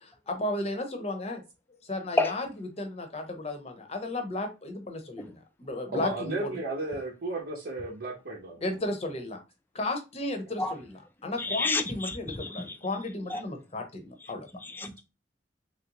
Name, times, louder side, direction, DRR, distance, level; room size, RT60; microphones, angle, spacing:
voice 1, 0.0-1.4 1.8-2.5 2.8-6.3 8.6-9.4 9.7-14.5, left 2 dB, 35° left, 0.7 m, -34 dB
voice 2, 5.9-8.6, right 2 dB, 65° right, 0.8 m, -34 dB
voice 3, 11.4-12.8 13.3-13.4 14.6-15.0, left 2 dB, 10° left, 0.3 m, -30 dB
3.2 x 2.5 x 2.9 m
head